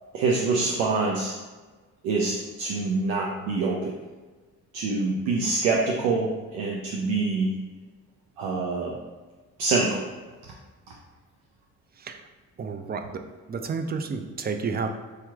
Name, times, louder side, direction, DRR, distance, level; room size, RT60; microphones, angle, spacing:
voice 1, 0.1-1.3 2.0-3.9 4.7-7.5 8.4-9.0 9.6-10.0, right 3 dB, 85° right, -2 dB, 0.5 m, -25 dB
voice 2, 12.6-13.2 13.5-14.9, right 5 dB, 25° right, 7 dB, 0.4 m, -30 dB
4.7 x 2.9 x 2.3 m, 1.3 s
hypercardioid pair, 50°, 42 cm